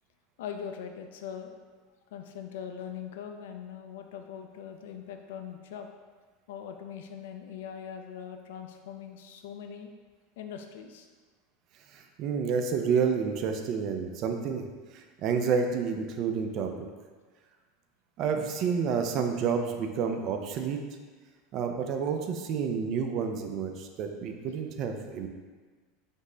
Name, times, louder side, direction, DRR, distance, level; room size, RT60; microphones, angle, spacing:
voice 1, 0.4-1.6 2.1-5.9 6.5-9.9 10.4-11.1, left 8 dB, 80° left, 5 dB, 0.3 m, -41 dB
voice 2, 11.9-16.7 18.2-20.8 21.5-25.3, right 6 dB, 45° right, 5 dB, 0.4 m, -29 dB
5.2 x 2.1 x 3.8 m, 1.4 s
supercardioid pair, 125°, 0 cm